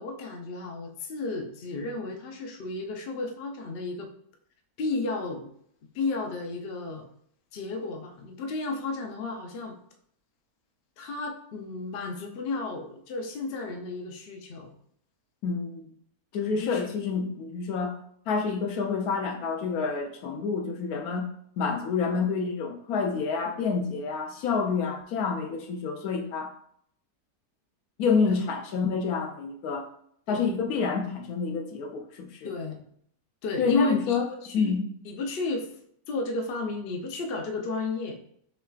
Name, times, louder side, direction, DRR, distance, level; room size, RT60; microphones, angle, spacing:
voice 1, 0.0-4.1 4.8-5.5 5.9-7.1 7.5-9.8 11.0-14.7 16.5-16.9 28.2-28.4 30.3-30.4 32.4-32.9 33.4-34.7 35.0-35.7 36.1-38.2, left 3 dB, 55° left, 3 dB, 0.7 m, -32 dB
voice 2, 15.4-15.9 16.3-18.0 18.3-21.3 21.6-26.5 28.0-29.9 30.3-32.5 33.6-34.3 34.5-34.9, left 5 dB, 75° left, 4 dB, 1.1 m, -28 dB
5.7 x 3.2 x 2.3 m, 0.67 s
omnidirectional pair, 1.6 m